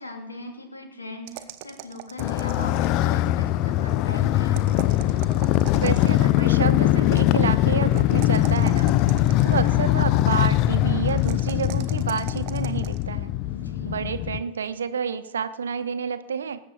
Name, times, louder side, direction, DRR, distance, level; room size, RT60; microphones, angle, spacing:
voice 1, 0.0-4.7 13.5-14.0, left 2 dB, 80° left, 3 dB, 2.5 m, -39 dB
sound 1, 1.3-3.1 4.5-6.4 7.9-9.8 11.1-13.0, right 13 dB, 45° right, 1.0 m, -41 dB
Motorcycle, 2.2-14.4, left 14 dB, 40° left, 0.4 m, -22 dB
voice 2, 5.8-8.9 9.4-13.3 13.9-16.6, right 6 dB, 70° right, 12 dB, 0.9 m, -29 dB
20.0 x 8.6 x 4.2 m, 0.97 s
figure-of-eight pair, 90°, 0 cm